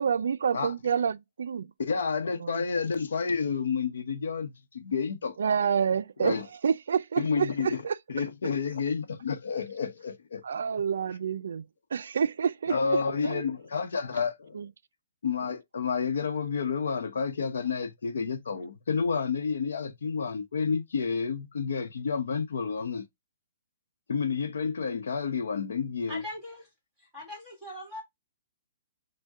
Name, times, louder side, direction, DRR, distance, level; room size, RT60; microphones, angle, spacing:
voice 1, 0.0-1.7 2.4-2.6 5.4-7.9 10.4-11.6 11.9-13.4 14.5-14.7, right 7 dB, 70° right, 0.3 m, -28 dB
voice 2, 1.8-5.4 6.2-6.4 7.2-7.8 8.1-10.4 12.7-14.6 15.2-23.0 24.1-26.2, left 5 dB, 80° left, 0.8 m, -30 dB
voice 3, 26.1-26.7 27.0-28.0, left 1 dB, 5° left, 1.8 m, -41 dB
6.3 x 2.2 x 3.5 m
hypercardioid pair, 175°, 0 cm